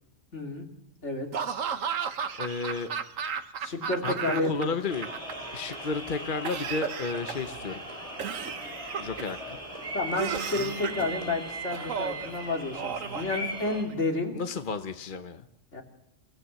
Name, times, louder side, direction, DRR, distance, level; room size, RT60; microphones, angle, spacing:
voice 1, 0.3-0.6 1.0-1.4 3.6-4.8 9.9-14.3 15.7-15.8, left 2 dB, 65° left, 3 dB, 3.2 m, -31 dB
Laughter / Cough, 1.3-4.6 4.9-5.8 6.5-7.6 8.2-9.4 10.1-11.1 11.7-12.3 12.7-13.9, right 7 dB, 90° right, 1.5 m, -34 dB
voice 2, 2.4-2.9 4.0-5.1 5.5-7.8 9.0-9.6 14.3-15.5, left 4 dB, 45° left, 8 dB, 1.1 m, -32 dB
sound 1, 4.9-13.8, right 1 dB, 25° right, 4.9 m, -39 dB
29.5 x 17.0 x 7.6 m, 0.81 s
omnidirectional pair, 1.3 m